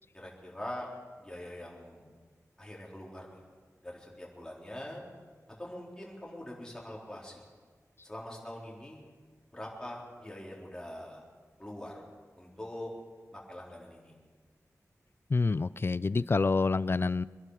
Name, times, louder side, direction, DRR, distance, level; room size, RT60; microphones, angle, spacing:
voice 1, 0.1-0.9 1.2-2.0 2.6-3.4 3.8-5.0 5.6-7.4 8.0-9.0 9.5-11.2 11.6-12.0 12.4-12.9 13.3-14.1, left 1 dB, 10° left, -3 dB, 4.0 m, -43 dB
voice 2, 15.3-17.2, left 4 dB, 40° left, 18 dB, 0.4 m, -27 dB
25.5 x 11.5 x 4.9 m, 1.5 s
wide cardioid pair, 100°, 6 cm